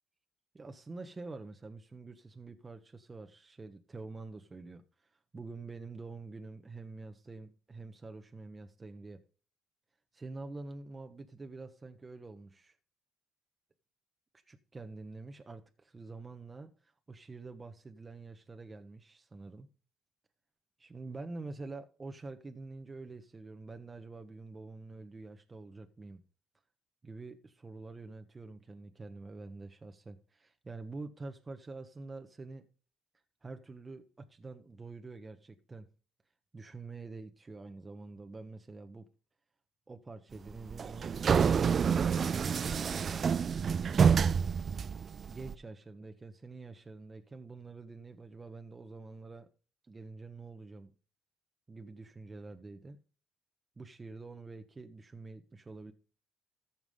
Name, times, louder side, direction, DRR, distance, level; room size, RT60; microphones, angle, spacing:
voice 1, 0.5-4.8 5.3-9.2 10.1-12.7 14.5-19.7 20.8-26.2 27.0-32.6 33.4-35.9 36.5-39.1 39.9-43.3 44.6-49.5 49.9-50.9 51.7-53.0 53.8-55.9, right 3 dB, 25° right, 1.3 m, -47 dB
sound 1, 40.5-45.5, right 6 dB, 45° right, 0.5 m, -28 dB
14.5 x 6.0 x 3.7 m
supercardioid pair, 75°, 0 cm